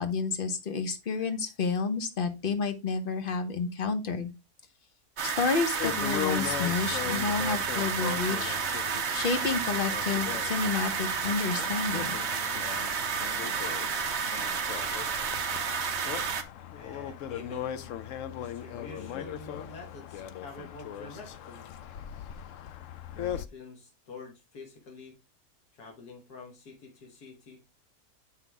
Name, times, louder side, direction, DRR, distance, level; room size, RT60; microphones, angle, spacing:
voice 1, 0.0-4.3 5.2-8.6 9.1-12.2, left 5 dB, 40° left, 8 dB, 1.0 m, -30 dB
sound 1, 5.2-16.4, right 6 dB, 50° right, 1.0 m, -31 dB
sound 2, 5.8-23.5, left 9 dB, 65° left, 0.9 m, -39 dB
voice 2, 16.7-17.9 18.4-21.7 23.2-25.2 25.7-27.6, left 3 dB, 85° left, 1 dB, 2.0 m, -47 dB
7.7 x 5.8 x 3.5 m, 0.26 s
omnidirectional pair, 1.6 m